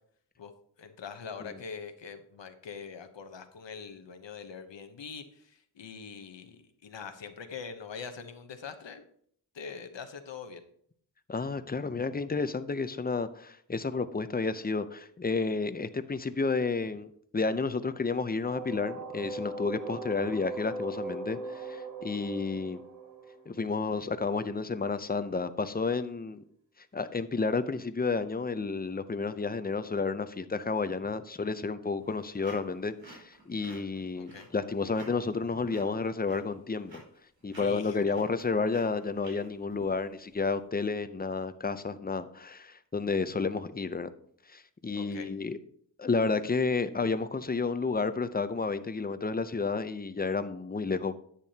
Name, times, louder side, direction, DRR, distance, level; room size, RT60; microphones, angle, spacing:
voice 1, 0.8-9.0 9.5-10.6 34.1-34.5 37.6-38.1 44.9-45.3, left 6 dB, 85° left, 8 dB, 0.9 m, -43 dB
voice 2, 11.3-17.1 17.3-22.8 23.5-26.4 26.9-37.0 37.4-44.1 44.5-45.6 46.0-51.1, left 4 dB, 20° left, 12 dB, 0.6 m, -31 dB
sound 1, 18.4-24.2, right 2 dB, 60° right, 3.1 m, -39 dB
sound 2, 31.8-40.4, right 2 dB, 90° right, 4.3 m, -52 dB
10.5 x 8.3 x 2.8 m, 0.64 s
wide cardioid pair, 65°, 43 cm